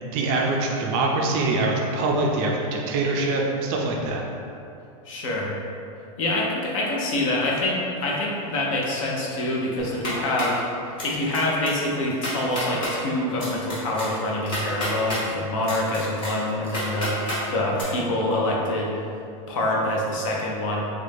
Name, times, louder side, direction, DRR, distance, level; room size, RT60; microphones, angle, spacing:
voice 1, 0.0-4.2, right 2 dB, 35° right, 0 dB, 0.4 m, -24 dB
voice 2, 5.0-5.5 6.2-10.6 11.0-18.9 19.5-20.8, left 1 dB, 60° left, -3 dB, 0.8 m, -26 dB
sound 1, 9.8-10.6 11.0-11.4 11.6-11.7 12.1-12.9 13.4-15.2 15.6-17.4 17.7-17.8, left 1 dB, 25° left, 1.1 m, -30 dB
3.2 x 2.5 x 3.4 m, 2.6 s
supercardioid pair, 155°, 19 cm